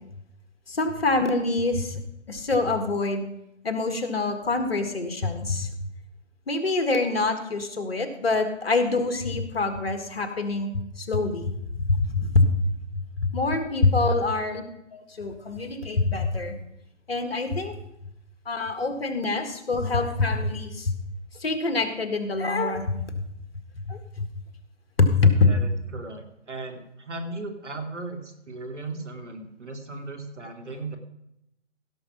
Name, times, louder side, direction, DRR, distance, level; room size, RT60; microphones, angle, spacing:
voice 1, 0.7-2.0 2.3-3.2 3.6-5.7 6.5-12.5 12.9-14.6 14.9-16.5 17.1-17.8 18.5-21.0 21.4-23.0 23.9-24.3 25.0-25.6, left 3 dB, 55° left, 7 dB, 1.8 m, -25 dB
voice 2, 25.4-31.0, right 2 dB, 75° right, 5 dB, 2.6 m, -37 dB
16.0 x 6.9 x 5.7 m, 0.80 s
figure-of-eight pair, 145°, 36 cm